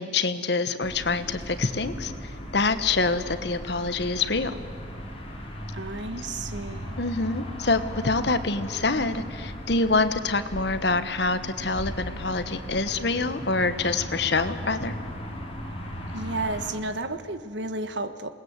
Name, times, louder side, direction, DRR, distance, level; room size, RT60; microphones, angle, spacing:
voice 1, 0.0-2.1 2.5-4.6 7.0-14.9, left 3 dB, 65° left, 11 dB, 1.3 m, -26 dB
sound 1, 0.8-16.7, equal, 35° left, 3.9 m, -37 dB
voice 2, 5.7-7.0 16.1-18.3, right 2 dB, 75° right, 10 dB, 1.4 m, -32 dB
27.5 x 20.5 x 8.2 m, 2.3 s
head